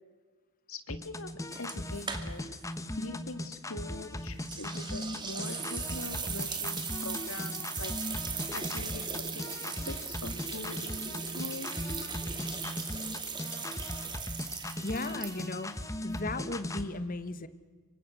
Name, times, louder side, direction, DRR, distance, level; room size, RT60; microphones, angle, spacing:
voice 1, 0.7-1.3 1.6-2.4 3.0-7.9 8.5-11.7 12.5-12.6, left 3 dB, 70° left, 9 dB, 2.1 m, -43 dB
sound 1, 0.9-16.9, left 1 dB, 15° left, 1.1 m, -38 dB
sound 2, 1.5-2.6 2.9-3.0 4.4-15.7, right 6 dB, 20° right, 2.1 m, -38 dB
voice 2, 14.8-17.5, left 2 dB, 40° left, 12 dB, 1.2 m, -36 dB
26.5 x 24.5 x 6.4 m, 1.5 s
head